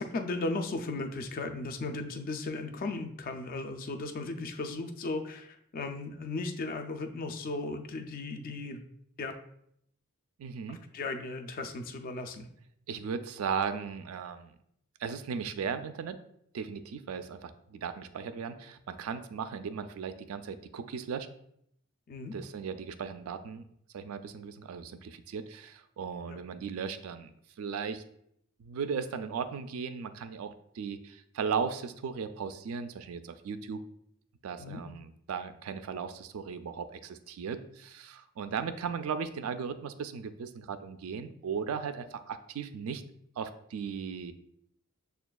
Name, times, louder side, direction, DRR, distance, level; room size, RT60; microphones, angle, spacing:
voice 1, 0.0-8.8 9.2-9.3 10.7-12.5 22.1-22.3 26.3-26.4 34.6-34.8, left 3 dB, 40° left, 6 dB, 0.3 m, -36 dB
voice 2, 10.4-10.8 12.9-14.6 15.0-16.2 16.5-21.3 22.3-23.6 23.9-27.3 27.6-28.0 28.6-33.8 34.4-43.0 43.4-44.3, right 6 dB, 70° right, 10 dB, 0.3 m, -37 dB
6.7 x 2.3 x 2.2 m, 0.71 s
head